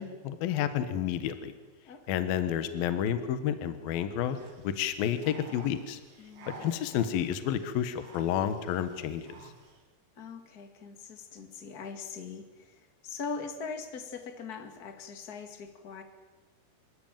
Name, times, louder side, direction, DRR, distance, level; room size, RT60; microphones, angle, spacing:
voice 1, 0.0-1.5 2.1-4.4 4.6-6.0 6.6-9.4, left 9 dB, 65° left, 10 dB, 2.7 m, -30 dB
voice 2, 1.8-2.3 6.2-6.6 10.2-16.0, left 5 dB, 40° left, 6 dB, 1.4 m, -41 dB
sound 1, 4.3-9.8, right 3 dB, 70° right, 6.0 m, -51 dB
26.5 x 14.0 x 9.1 m, 1.3 s
omnidirectional pair, 5.1 m